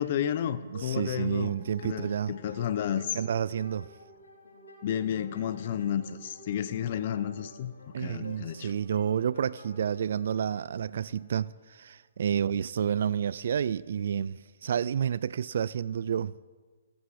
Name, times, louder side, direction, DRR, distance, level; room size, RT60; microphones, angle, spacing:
voice 1, 0.0-1.6 1.8-3.2 4.8-8.7, left 9 dB, 45° left, 0.7 m, -31 dB
sound 1, 0.7-11.2, left 2 dB, 85° left, 5.1 m, -50 dB
voice 2, 0.7-2.3 3.1-3.9 7.9-16.3, right 8 dB, 60° right, 0.3 m, -30 dB
14.5 x 14.5 x 4.8 m
hypercardioid pair, 140°, 0 cm